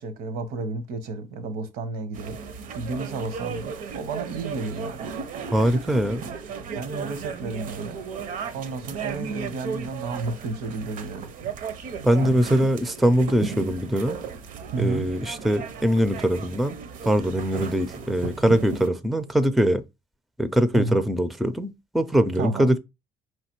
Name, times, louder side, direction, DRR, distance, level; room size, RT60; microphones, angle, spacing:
voice 1, 0.0-2.4 2.7-5.1 6.0-6.3 6.7-8.0 8.5-11.3 12.2-12.4 14.7-15.1 20.7-21.0 22.4-22.7, right 3 dB, 80° right, 0.9 m, -32 dB
sound 1, 2.1-18.9, right 6 dB, 60° right, 0.6 m, -35 dB
voice 2, 5.5-6.3 12.0-14.2 14.8-16.8 17.0-19.8 20.4-22.8, equal, ahead, 0.4 m, -22 dB
4.7 x 3.2 x 3.0 m
cardioid pair, 110°, 15 cm